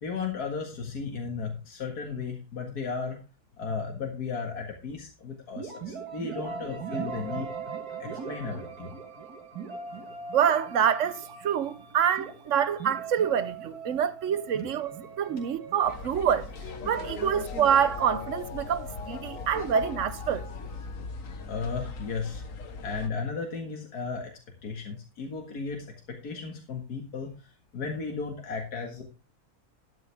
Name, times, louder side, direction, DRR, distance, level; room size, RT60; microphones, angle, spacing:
voice 1, 0.0-3.2 3.6-7.5 8.0-8.9 21.5-22.4 22.8-24.3 24.6-27.3 27.7-29.0, left 5 dB, 85° left, 2.3 m, -35 dB
sound 1, 5.6-17.3, right 5 dB, 85° right, 2.0 m, -40 dB
voice 2, 10.3-14.9 15.2-16.5 16.8-20.5, right 8 dB, 60° right, 1.0 m, -26 dB
sound 2, 15.8-23.1, left 4 dB, 60° left, 1.5 m, -40 dB
Mallet percussion, 16.6-22.1 22.5-22.6, left 4 dB, 35° left, 2.0 m, -43 dB
12.5 x 9.4 x 3.4 m
omnidirectional pair, 1.6 m